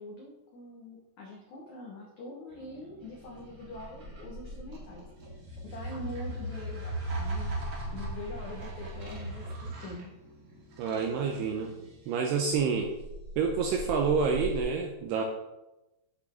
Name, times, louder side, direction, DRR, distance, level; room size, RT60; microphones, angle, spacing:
voice 1, 0.0-5.1 5.6-7.5 7.9-10.1, left 1 dB, 80° left, -2 dB, 1.6 m, -44 dB
sound 1, 2.5-12.0, equal, 65° right, 4.0 m, -53 dB
sound 2, 3.2-9.9 12.5-14.6, right 1 dB, 40° right, 1.8 m, -37 dB
voice 2, 10.8-11.7 12.1-12.9 13.4-15.2, right 5 dB, 90° right, 3 dB, 2.4 m, -28 dB
8.9 x 7.3 x 3.6 m, 0.98 s
omnidirectional pair, 5.4 m